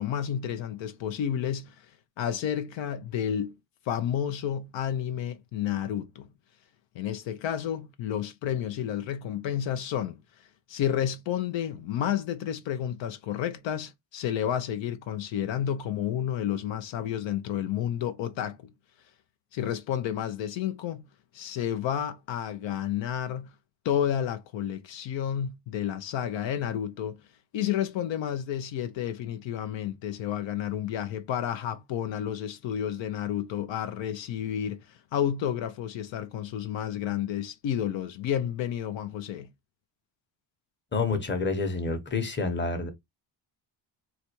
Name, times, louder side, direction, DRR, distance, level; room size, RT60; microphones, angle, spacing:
voice 1, 0.0-3.6 3.9-6.3 6.9-18.7 19.5-21.0 21.3-23.5 23.8-27.2 27.5-39.5, left 10 dB, 75° left, 0.6 m, -31 dB
voice 2, 40.9-42.9, left 4 dB, 25° left, 0.9 m, -28 dB
4.0 x 2.3 x 2.9 m
cardioid pair, 110°, 45 cm